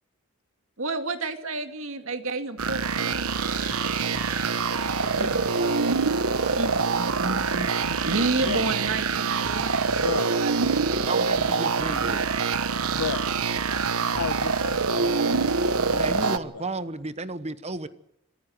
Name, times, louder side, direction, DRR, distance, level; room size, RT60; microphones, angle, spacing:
voice 1, 0.8-3.3 5.2-5.4 6.6-11.3, right 3 dB, 65° right, 7 dB, 2.3 m, -31 dB
sound 1, 2.6-16.4, right 4 dB, 85° right, 1.1 m, -25 dB
sound 2, 3.2-8.7, right 3 dB, 45° right, 7.9 m, -45 dB
voice 2, 5.0-6.8 10.9-12.2 15.9-17.9, right 2 dB, 30° right, 13 dB, 1.1 m, -34 dB
voice 3, 10.0-10.3 12.9-13.2 14.1-16.3, left 5 dB, 90° left, 12 dB, 1.4 m, -33 dB
26.5 x 15.0 x 7.9 m, 0.77 s
head